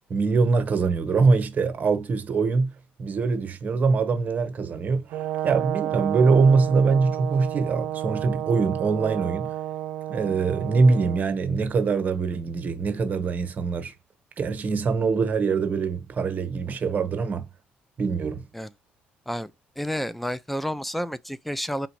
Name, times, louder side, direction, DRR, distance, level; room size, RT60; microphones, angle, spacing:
voice 1, 0.1-2.7 3.0-9.5 10.1-13.9 14.4-17.5 18.0-18.4, right 4 dB, 40° right, 1.0 m, -23 dB
Brass instrument, 5.1-11.2, right 13 dB, 85° right, 0.4 m, -31 dB
voice 2, 19.8-21.9, equal, 5° left, 0.4 m, -30 dB
3.9 x 2.5 x 4.5 m
cardioid pair, 85°, 4 cm